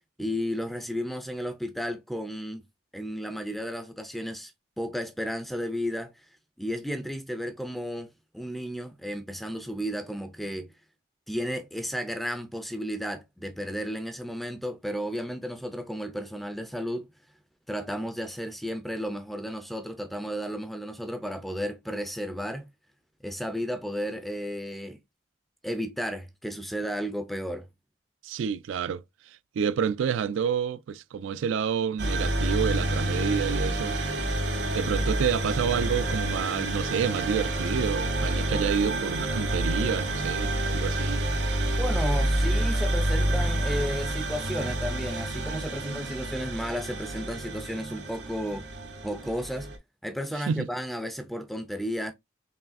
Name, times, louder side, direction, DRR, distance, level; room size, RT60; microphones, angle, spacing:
voice 1, 0.2-2.6 2.9-4.5 4.8-6.1 6.6-10.7 11.3-17.1 17.7-22.7 23.2-25.0 25.6-27.7 41.8-48.7 49.0-49.7 50.0-52.1, equal, ahead, 0.4 m, -33 dB
voice 2, 28.2-29.0 29.6-34.0 34.7-41.2 50.5-50.7, right 7 dB, 85° right, 0.3 m, -29 dB
sound 1, 32.0-49.8, right 1 dB, 65° right, 1.0 m, -28 dB
4.7 x 3.1 x 2.5 m
head